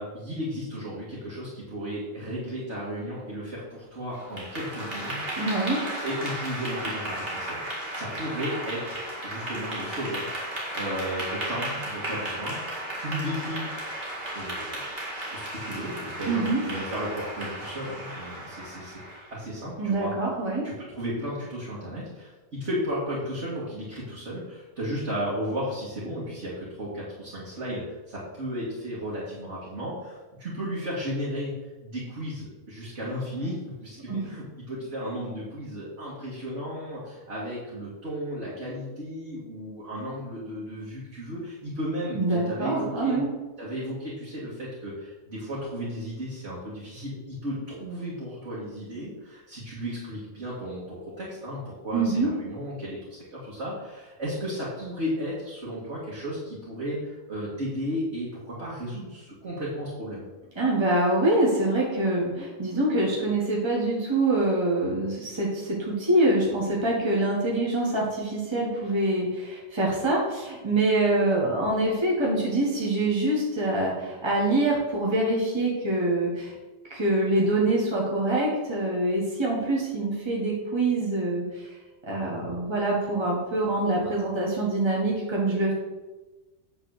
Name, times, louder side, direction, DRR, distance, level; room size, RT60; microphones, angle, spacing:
voice 1, 0.0-5.2 6.0-13.7 14.3-14.8 15.3-19.0 19.3-20.1 20.6-31.5 31.8-43.2 43.6-60.2, equal, 60° right, -7 dB, 2.3 m, -34 dB
Clapping / Applause, 4.1-19.4, right 1 dB, 35° right, 2.3 m, -34 dB
voice 2, 5.4-5.8 16.3-16.6 19.8-20.7 34.1-34.2 42.1-43.3 51.9-52.3 60.6-76.5 76.9-81.7 82.1-85.7, right 2 dB, 20° right, -4 dB, 1.7 m, -25 dB
8.9 x 4.2 x 6.5 m, 1.2 s
omnidirectional pair, 1.4 m